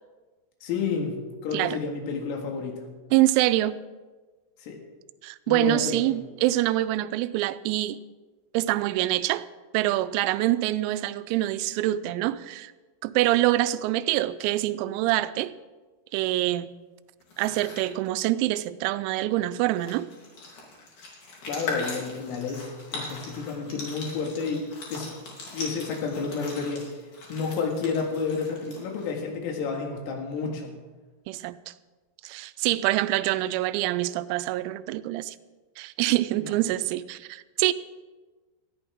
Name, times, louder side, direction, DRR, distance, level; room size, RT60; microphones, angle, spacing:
voice 1, 0.6-2.8 4.6-4.8 5.5-6.1 21.5-25.1 25.5-26.9 27.3-30.7 36.3-36.5, left 5 dB, 75° left, 2 dB, 4.4 m, -30 dB
voice 2, 3.1-3.8 5.2-8.0 8.5-9.4 9.7-12.7 13.0-15.5 16.1-16.7 17.4-20.1 31.3-31.7 32.2-35.4 35.8-37.7, right 16 dB, 90° right, 15 dB, 3.3 m, -25 dB
sound 1, 17.2-17.9 19.3-19.4 19.6-29.2, left 3 dB, 45° left, 3.9 m, -40 dB
19.5 x 14.0 x 3.6 m, 1.3 s
omnidirectional pair, 6.0 m